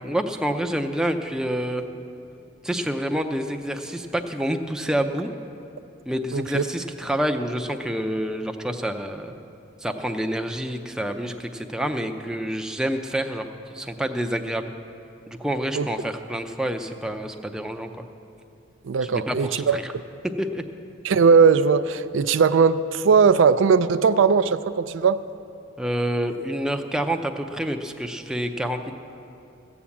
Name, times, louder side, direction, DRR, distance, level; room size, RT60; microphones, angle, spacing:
voice 1, 0.0-1.8 2.6-5.3 6.1-9.3 9.8-14.7 15.3-17.9 19.0-19.9 20.4-20.6 25.8-28.9, right 1 dB, 5° right, 5 dB, 0.5 m, -28 dB
voice 2, 6.3-6.6 15.7-15.9 18.8-19.8 21.0-25.2, right 5 dB, 75° right, 12 dB, 0.4 m, -19 dB
15.0 x 7.1 x 8.5 m, 2.7 s
head